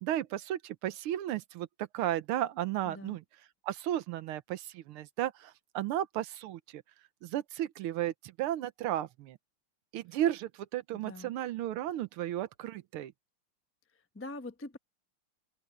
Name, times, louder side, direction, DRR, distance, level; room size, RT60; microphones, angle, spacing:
voice 1, 0.0-3.2 3.6-6.8 7.2-9.4 9.9-13.1, right 12 dB, 85° right, 1.7 m, -34 dB
voice 2, 2.8-3.2 10.9-11.3 13.9-14.8, left 2 dB, 20° left, 0.3 m, -44 dB
open air
omnidirectional pair, 2.3 m